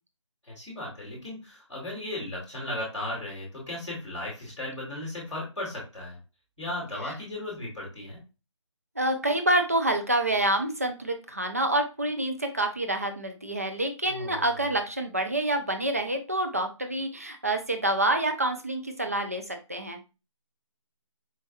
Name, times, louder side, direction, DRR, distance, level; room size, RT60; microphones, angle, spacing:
voice 1, 0.4-6.2 6.6-8.2 14.0-14.7, left 1 dB, 5° right, -13 dB, 0.9 m, -36 dB
voice 2, 9.0-20.0, right 1 dB, 30° right, 5 dB, 0.4 m, -27 dB
4.4 x 2.9 x 2.3 m, 0.29 s
figure-of-eight pair, 175°, 17 cm